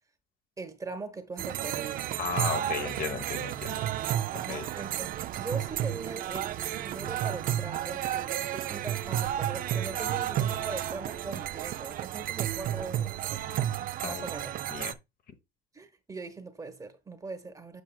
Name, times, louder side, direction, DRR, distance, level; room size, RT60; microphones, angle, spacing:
voice 1, 0.6-2.1 4.3-5.1 5.3-14.6 15.7-17.8, right 3 dB, 20° right, 1.1 m, -41 dB
sound 1, 1.4-14.9, right 12 dB, 55° right, 0.4 m, -32 dB
voice 2, 2.2-3.8 4.5-4.7 14.0-14.3 14.7-14.9, left 6 dB, 55° left, 1.0 m, -34 dB
sound 2, 5.5-11.2, right 1 dB, 30° left, 1.0 m, -50 dB
7.3 x 6.0 x 2.2 m
cardioid pair, 110°, 17 cm